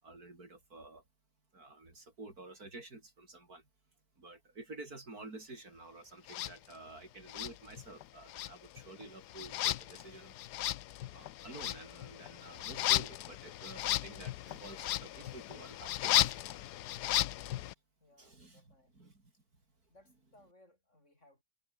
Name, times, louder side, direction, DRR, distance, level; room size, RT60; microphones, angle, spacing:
voice 1, 0.0-1.0 1.5-3.6 4.2-10.4 11.1-16.6 18.2-19.3, right 2 dB, 65° right, 5.4 m, -50 dB
sound 1, 6.3-6.5 7.3-8.0 8.3-17.7, left 14 dB, 90° left, 1.3 m, -35 dB
voice 2, 18.0-19.0 19.9-21.4, left 1 dB, 45° left, 7.1 m, -64 dB
omnidirectional pair, 1.7 m